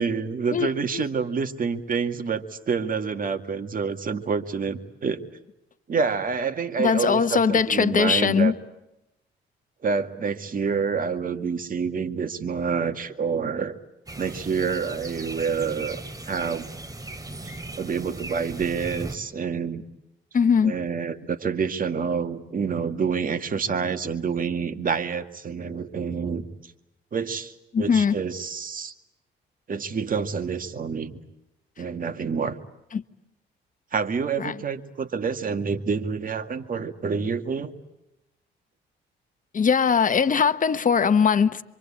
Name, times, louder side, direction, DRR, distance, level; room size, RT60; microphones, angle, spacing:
voice 1, 0.0-5.2 5.9-8.5 9.8-13.7 14.2-16.7 17.4-19.8 20.6-26.7 27.1-28.9 29.7-31.2 31.8-32.6 33.9-37.7, right 5 dB, 45° right, 2.1 m, -28 dB
voice 2, 6.8-8.5 20.3-20.7 27.7-28.1 32.9-33.0 34.4-34.5 39.5-41.6, left 6 dB, 40° left, 1.2 m, -20 dB
sound 1, 14.1-19.2, right 2 dB, 20° right, 2.9 m, -37 dB
26.5 x 25.0 x 8.7 m
cardioid pair, 90°, 20 cm